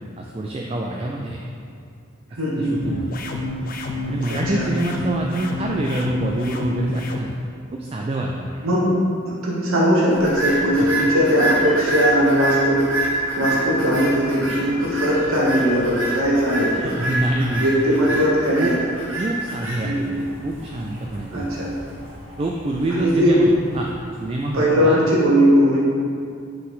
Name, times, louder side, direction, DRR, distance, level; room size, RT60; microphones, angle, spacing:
voice 1, 0.2-1.5 2.6-3.1 4.1-7.4 7.7-8.6 10.8-10.9 16.7-17.7 18.6-18.7 19.2-21.5 22.4-23.5 23.7-23.9 24.2-25.0, right 1 dB, 30° right, 0 dB, 0.3 m, -26 dB
voice 2, 2.4-2.7 4.3-4.7 8.6-9.0 9.3-12.8 13.4-16.9 17.6-18.8 19.8-20.2 21.3-21.7 22.9-23.4 24.5-25.8, equal, 90° right, -5 dB, 1.1 m, -19 dB
sound 1, 2.8-7.2, left 2 dB, 40° left, 0.5 m, -29 dB
sound 2, 10.1-24.5, right 1 dB, 70° right, 1.4 m, -28 dB
7.4 x 4.2 x 4.0 m, 2.3 s
head